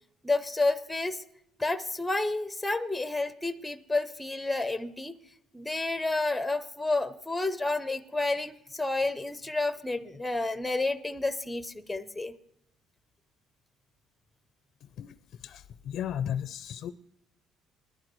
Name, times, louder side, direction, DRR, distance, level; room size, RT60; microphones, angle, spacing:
voice 1, 0.2-1.2 1.6-5.1 5.5-12.3, left 2 dB, 5° left, 12 dB, 0.5 m, -30 dB
voice 2, 15.4-16.9, left 9 dB, 55° left, 13 dB, 0.4 m, -34 dB
21.0 x 11.5 x 3.0 m, 0.77 s
cardioid pair, 135°, 0 cm